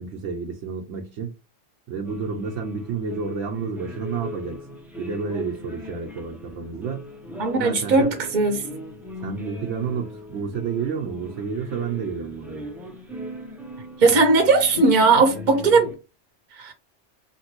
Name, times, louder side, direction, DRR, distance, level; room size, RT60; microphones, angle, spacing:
voice 1, 0.0-1.3 1.9-4.7 5.0-7.0 7.6-8.1 9.2-12.7, right 5 dB, 90° right, 0.9 m, -30 dB
sound 1, 2.0-16.0, left 1 dB, ahead, 0.4 m, -39 dB
voice 2, 7.4-8.6 14.0-15.9 16.5-16.7, right 3 dB, 50° right, 0.8 m, -18 dB
2.9 x 2.6 x 2.9 m
omnidirectional pair, 1.2 m